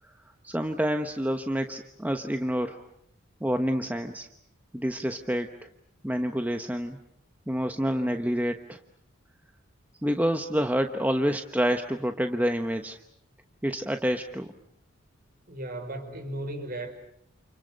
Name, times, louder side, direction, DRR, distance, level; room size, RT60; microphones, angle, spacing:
voice 1, 0.4-2.8 3.4-4.3 4.7-5.5 6.0-7.0 7.5-8.8 10.0-13.0 13.6-14.5, equal, 10° right, 6 dB, 1.1 m, -28 dB
voice 2, 15.5-16.9, right 1 dB, 45° right, 6 dB, 5.3 m, -35 dB
29.5 x 29.5 x 6.5 m, 0.68 s
head